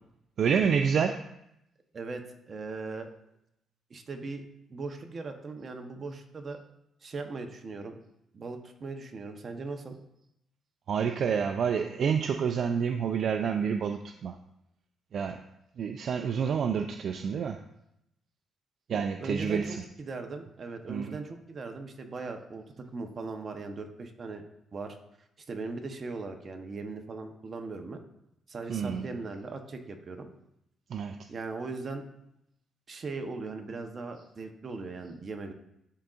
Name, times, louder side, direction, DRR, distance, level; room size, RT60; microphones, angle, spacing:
voice 1, 0.4-1.3 10.9-14.4 15.1-15.4 15.8-17.6 18.9-19.9 20.9-21.2 28.7-29.1 30.9-31.2, right 7 dB, 60° right, 7 dB, 0.4 m, -28 dB
voice 2, 1.9-3.1 3.9-4.4 4.7-6.6 7.0-8.0 8.3-9.9 18.9-22.6 22.9-24.4 24.7-25.0 25.5-28.0 28.5-30.3 31.3-32.1 32.9-35.5, right 3 dB, 40° right, 5 dB, 0.8 m, -39 dB
11.0 x 3.8 x 2.4 m, 0.80 s
cardioid pair, 90°, 0 cm